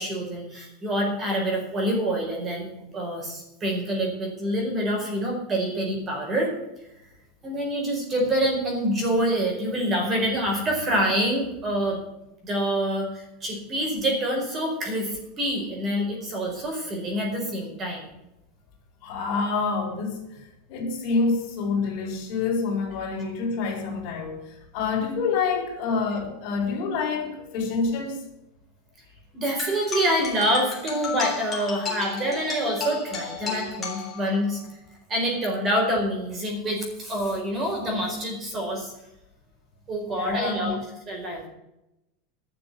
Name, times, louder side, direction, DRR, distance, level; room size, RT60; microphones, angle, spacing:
voice 1, 0.0-2.6 2.9-6.5 7.4-12.0 12.4-18.0 29.3-34.6 35.1-38.9 39.9-40.8 41.1-41.5, equal, 25° right, 4.5 m, -26 dB
voice 2, 19.0-20.4 20.7-28.2 40.0-40.8, left 4 dB, 50° left, 4.7 m, -27 dB
sound 1, 29.6-34.6, left 6 dB, 15° left, 3.7 m, -34 dB
12.0 x 7.0 x 9.4 m
supercardioid pair, 160°, 0 cm